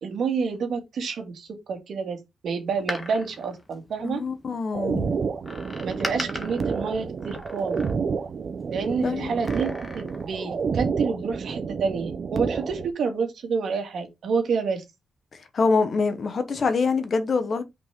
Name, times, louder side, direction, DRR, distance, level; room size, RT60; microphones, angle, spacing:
voice 1, 0.0-2.2 2.4-4.2 5.8-7.8 8.7-9.7 9.9-14.8, right 5 dB, 60° right, 2.2 m, -28 dB
Door, 2.7-4.5 5.4-8.3 9.2-10.4 10.7-10.8, left 2 dB, 20° left, 1.5 m, -38 dB
voice 2, 4.0-5.1 9.0-9.3 15.5-17.6, left 4 dB, 40° left, 1.1 m, -25 dB
sound 1, 4.7-12.9, right 5 dB, 40° right, 0.9 m, -29 dB
6.2 x 5.3 x 3.7 m
wide cardioid pair, 170°, 0 cm